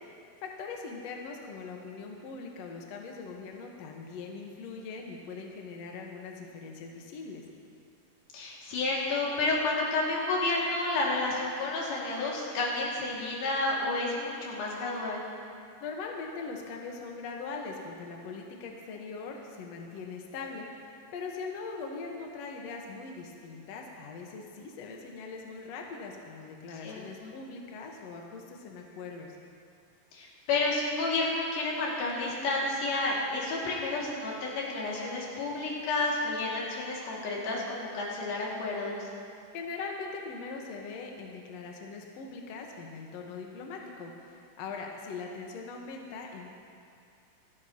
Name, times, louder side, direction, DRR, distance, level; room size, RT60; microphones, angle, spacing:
voice 1, 0.4-7.4 15.8-20.7 21.1-29.3 39.5-46.5, left 4 dB, 60° left, 1 dB, 1.9 m, -41 dB
voice 2, 8.3-15.3 26.8-27.3 30.1-39.0 43.8-44.0, left 2 dB, 90° left, -5 dB, 4.1 m, -31 dB
27.5 x 10.5 x 2.9 m, 2.5 s
omnidirectional pair, 4.1 m